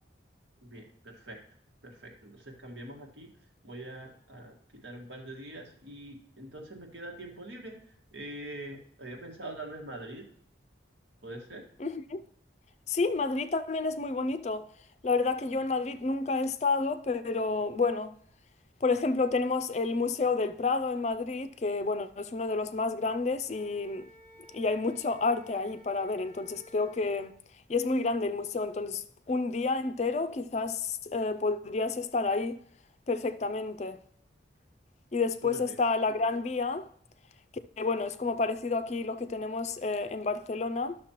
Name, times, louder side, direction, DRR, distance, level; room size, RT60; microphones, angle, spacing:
voice 1, 0.6-1.4 1.8-3.3 3.6-7.7 8.1-10.2 11.2-11.6 35.4-35.8, right 1 dB, 80° right, 1.7 m, -44 dB
voice 2, 11.8-12.2 12.9-14.7 15.0-18.1 18.8-24.1 24.5-27.4 27.7-32.6 33.1-34.0 35.1-36.9 37.8-41.0, left 3 dB, 35° left, 0.4 m, -30 dB
Wind instrument woodwind instrument, 23.4-27.3, equal, 15° left, 0.8 m, -54 dB
12.0 x 6.4 x 3.0 m
head